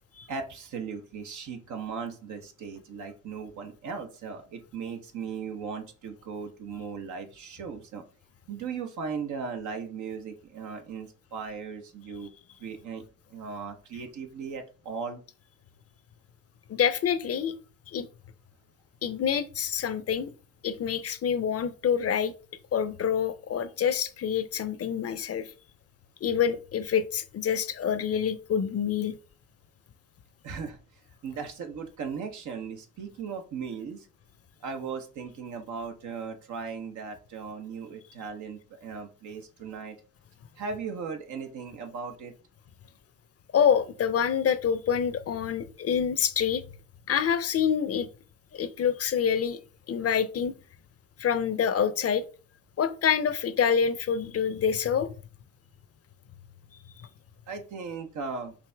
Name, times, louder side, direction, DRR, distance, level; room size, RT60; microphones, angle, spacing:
voice 1, 0.3-8.0 8.5-12.3 12.6-13.0 13.3-15.2 30.4-34.1 34.6-40.0 40.6-42.3 57.5-58.5, right 5 dB, 70° right, 0.9 m, -37 dB
voice 2, 16.7-17.5 17.9-18.1 19.0-20.3 20.6-22.3 22.7-25.5 26.2-29.2 43.5-46.6 47.1-48.1 48.5-49.6 49.9-50.5 51.2-52.3 52.8-55.1, left 8 dB, 50° left, 0.6 m, -26 dB
5.0 x 2.8 x 3.3 m
hypercardioid pair, 45°, 31 cm